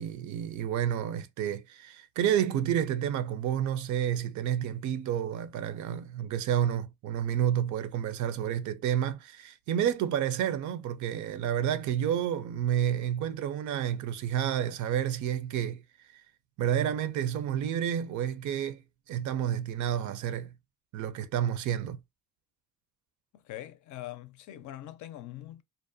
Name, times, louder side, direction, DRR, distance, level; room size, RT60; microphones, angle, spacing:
voice 1, 0.0-15.8 16.6-18.8 19.1-20.5 20.9-22.0, right 10 dB, 75° right, 0.5 m, -30 dB
voice 2, 23.3-25.6, left 14 dB, 70° left, 0.5 m, -43 dB
2.5 x 2.1 x 2.6 m
cardioid pair, 90°, 30 cm